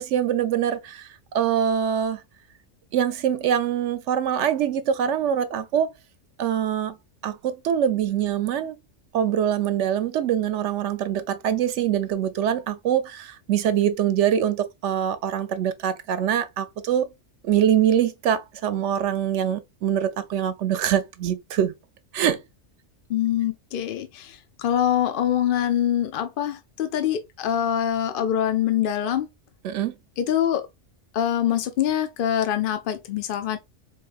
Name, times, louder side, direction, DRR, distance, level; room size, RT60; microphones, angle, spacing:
voice 1, 0.0-2.2 2.9-5.9 6.4-7.0 7.2-8.8 9.1-17.1 17.4-21.7 22.1-22.4 29.6-29.9, right 9 dB, 75° right, 0.9 m, -24 dB
voice 2, 23.1-29.3 30.2-30.7 31.1-33.6, left 10 dB, 60° left, 0.6 m, -24 dB
4.7 x 2.9 x 2.4 m
omnidirectional pair, 1.3 m